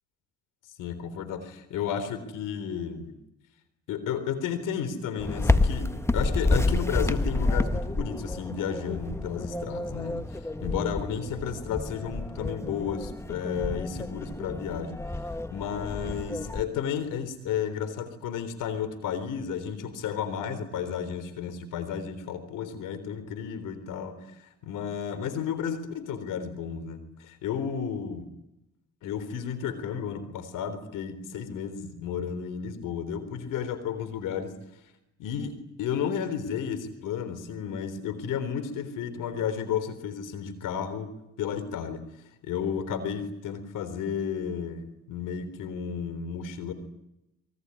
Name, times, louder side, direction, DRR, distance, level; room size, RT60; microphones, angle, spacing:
voice 1, 0.8-3.1 3.9-15.0 15.2-28.3 29.0-34.5 35.2-41.1 41.4-42.0 42.4-46.7, left 7 dB, 90° left, 13 dB, 3.8 m, -32 dB
sound 1, 5.2-16.6, left 2 dB, 10° left, 1.4 m, -29 dB
26.0 x 23.0 x 9.9 m, 0.86 s
cardioid pair, 75°, 31 cm